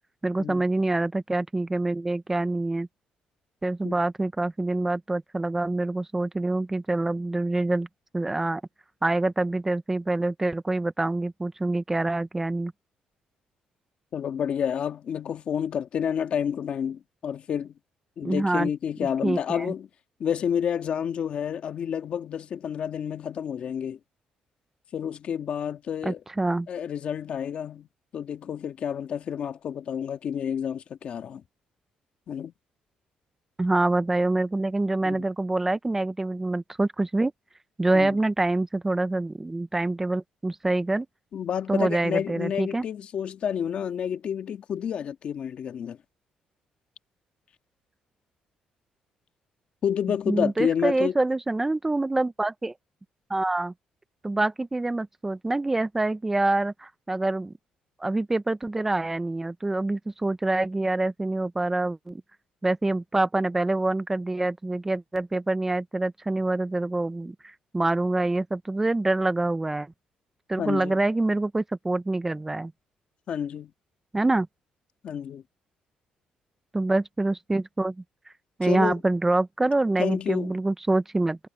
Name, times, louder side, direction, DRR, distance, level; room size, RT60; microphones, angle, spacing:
voice 1, 0.2-2.9 3.6-7.9 8.1-8.6 9.0-12.7 18.2-18.7 19.2-19.7 26.0-26.7 33.6-37.3 37.8-41.1 41.7-42.8 50.3-52.7 53.3-53.7 54.2-57.5 58.0-62.2 62.6-69.9 70.5-72.7 74.1-74.5 76.7-78.0 78.6-81.4, right 2 dB, 15° right, 0.5 m, -26 dB
voice 2, 14.1-17.7 18.2-19.9 20.2-24.0 24.9-26.2 26.7-27.9 28.1-31.4 32.3-32.5 35.0-35.2 37.9-38.1 41.3-46.0 49.8-51.1 70.6-71.0 73.3-73.7 75.0-75.4 78.6-78.9 80.0-80.6, left 8 dB, 50° left, 1.7 m, -29 dB
cardioid pair, 130°, 2 cm